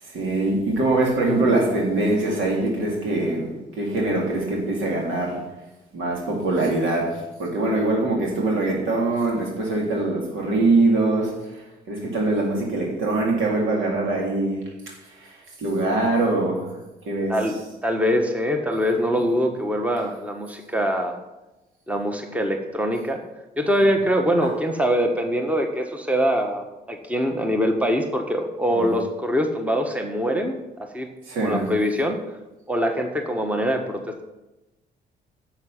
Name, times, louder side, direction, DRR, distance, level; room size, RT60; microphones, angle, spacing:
voice 1, 0.1-5.4 5.9-16.7 17.1-17.4 24.4-24.5 28.7-29.0 31.3-31.7, right 2 dB, 80° right, -1 dB, 3.5 m, -23 dB
voice 2, 17.8-21.2 21.9-23.2 23.6-31.1 31.4-32.2 32.7-34.2, equal, 5° right, 4 dB, 1.3 m, -23 dB
10.5 x 7.3 x 6.1 m, 1.0 s
cardioid pair, 90°, 20 cm